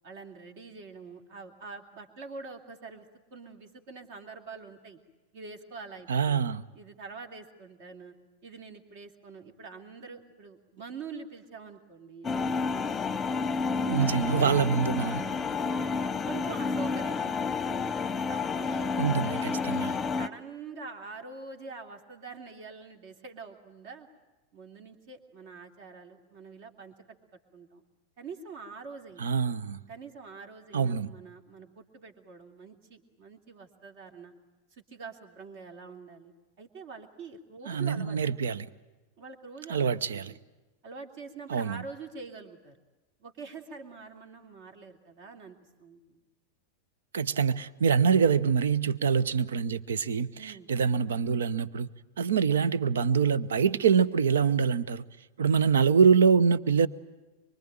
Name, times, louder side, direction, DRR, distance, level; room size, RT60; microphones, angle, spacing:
voice 1, 0.0-5.0 5.3-6.4 6.7-8.1 8.4-13.4 15.0-17.8 18.3-18.9 19.2-24.1 24.5-26.9 27.5-27.8 28.2-29.3 29.9-34.3 34.7-38.5 39.2-40.4 40.8-42.8 43.2-46.2 50.3-50.7, right 4 dB, 50° right, 2.8 m, -45 dB
voice 2, 6.1-6.6 13.9-15.2 19.0-19.9 29.2-29.8 30.7-31.1 37.7-38.7 39.7-40.3 41.5-41.8 47.1-51.9 52.2-55.0 55.4-56.9, right 6 dB, 65° right, 0.8 m, -25 dB
sound 1, 12.2-20.3, left 5 dB, 15° left, 0.9 m, -30 dB
24.5 x 24.5 x 9.0 m
figure-of-eight pair, 90°, 0 cm